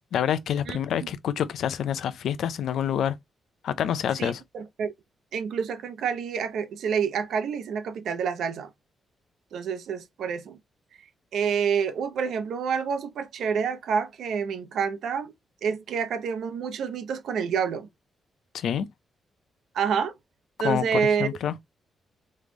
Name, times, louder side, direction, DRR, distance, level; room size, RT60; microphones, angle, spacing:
voice 1, 0.0-3.2 3.6-4.4 18.5-18.9 20.6-21.5, left 9 dB, 80° left, 0.5 m, -27 dB
voice 2, 0.7-1.1 4.2-4.9 5.3-8.7 9.5-10.6 11.3-15.3 15.6-17.9 19.7-20.1 20.6-21.3, right 6 dB, 75° right, 0.7 m, -28 dB
3.6 x 3.2 x 3.8 m
wide cardioid pair, 145°, 0 cm